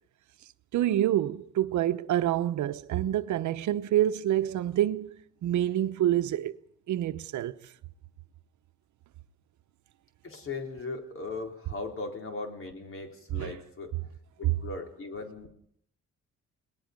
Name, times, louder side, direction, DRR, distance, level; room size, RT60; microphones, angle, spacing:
voice 1, 0.7-5.1 5.4-6.6 6.9-7.6 13.3-13.6 14.4-14.5, right 12 dB, 75° right, 0.9 m, -27 dB
voice 2, 10.2-13.9 14.4-15.5, left 3 dB, 45° left, 4.1 m, -38 dB
29.5 x 19.5 x 5.3 m
cardioid pair, 90°, 30 cm